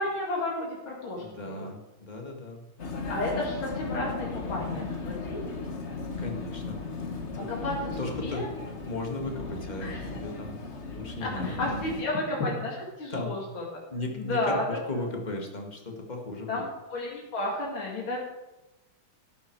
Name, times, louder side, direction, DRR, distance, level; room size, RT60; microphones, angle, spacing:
voice 1, 0.0-1.7 3.1-5.4 7.5-8.5 9.8-10.0 11.2-13.6 14.2-15.0 16.5-18.2, left 1 dB, 90° left, -3 dB, 3.1 m, -32 dB
voice 2, 1.2-2.6 6.2-6.8 7.3-7.5 8.0-10.6 10.9-11.6 13.1-13.3 13.9-16.5, left 2 dB, 20° left, 2 dB, 2.0 m, -36 dB
Vehicle, 2.8-12.0, left 3 dB, 40° left, 1.5 m, -36 dB
13.0 x 11.0 x 4.7 m, 1.0 s
omnidirectional pair, 2.1 m